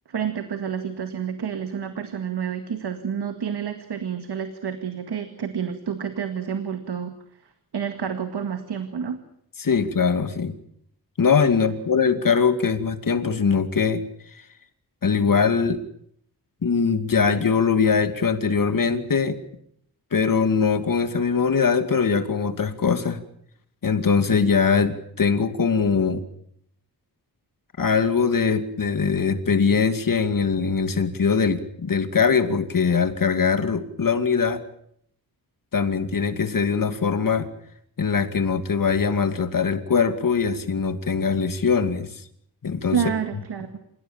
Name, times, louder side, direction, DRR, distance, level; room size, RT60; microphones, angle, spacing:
voice 1, 0.1-7.1 7.7-9.2 42.9-43.7, right 7 dB, 80° right, 8 dB, 2.1 m, -29 dB
voice 2, 9.6-10.6 11.2-14.0 15.0-15.8 16.6-19.4 20.1-23.2 23.8-26.2 27.8-34.6 35.7-37.5 38.0-42.1 42.6-43.0, left 5 dB, 55° left, 9 dB, 2.5 m, -22 dB
28.0 x 16.5 x 8.9 m, 0.70 s
wide cardioid pair, 120°, 39 cm